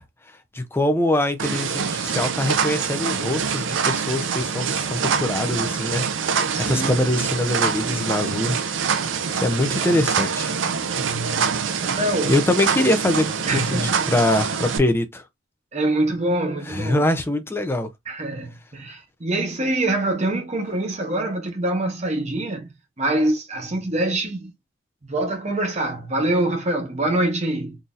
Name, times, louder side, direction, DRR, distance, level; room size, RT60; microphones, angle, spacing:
voice 1, 0.5-6.3 6.6-8.8 9.0-10.5 12.3-15.2 16.7-17.9, left 1 dB, 10° left, 0.5 m, -23 dB
sound 1, 1.4-14.8, right 6 dB, 65° right, 0.5 m, -25 dB
voice 2, 6.5-6.9 10.9-12.4 13.5-14.1 15.7-17.0 18.1-22.7 23.0-24.5 25.0-27.8, right 1 dB, 35° right, 1.0 m, -25 dB
3.9 x 2.7 x 2.5 m
head